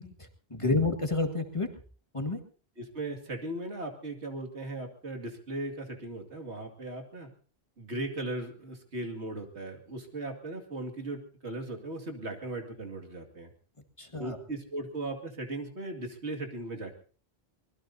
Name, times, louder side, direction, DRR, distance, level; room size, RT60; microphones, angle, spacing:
voice 1, 0.0-1.7 2.1-2.4 14.0-14.4, left 3 dB, 30° left, 5 dB, 1.9 m, -30 dB
voice 2, 2.8-7.3 7.8-13.5 14.2-17.0, right 2 dB, 90° right, 3 dB, 2.6 m, -38 dB
24.5 x 20.5 x 2.8 m, 0.41 s
omnidirectional pair, 1.1 m